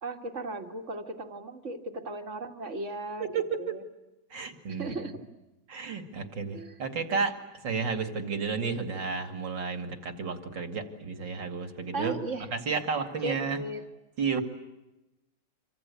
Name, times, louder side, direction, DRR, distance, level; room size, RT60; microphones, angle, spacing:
voice 1, 0.0-3.3 3.6-3.8 4.8-5.2 6.5-6.8 11.9-12.5 13.2-13.8, right 2 dB, 40° right, 5 dB, 2.1 m, -36 dB
voice 2, 3.2-3.8 4.3-4.9 5.7-7.4 7.6-12.2 12.5-13.6 14.2-14.4, right 5 dB, 70° right, 6 dB, 3.1 m, -32 dB
26.5 x 25.5 x 8.5 m, 1.0 s
omnidirectional pair, 2.1 m